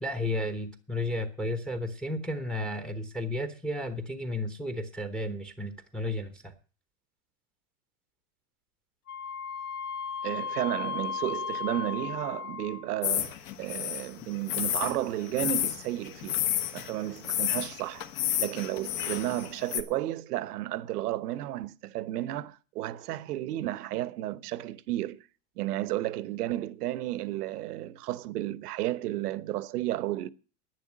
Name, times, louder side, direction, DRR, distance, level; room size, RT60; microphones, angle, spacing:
voice 1, 0.0-6.5, left 1 dB, ahead, 1.0 m, -33 dB
Wind instrument woodwind instrument, 9.1-13.0, left 6 dB, 75° left, 2.6 m, -35 dB
voice 2, 10.2-16.4 16.7-18.1 18.4-25.2 25.6-30.3, right 14 dB, 80° right, 1.1 m, -33 dB
sound 1, 13.0-19.8, left 11 dB, 55° left, 1.6 m, -31 dB
11.0 x 9.7 x 7.4 m
supercardioid pair, 150°, 46 cm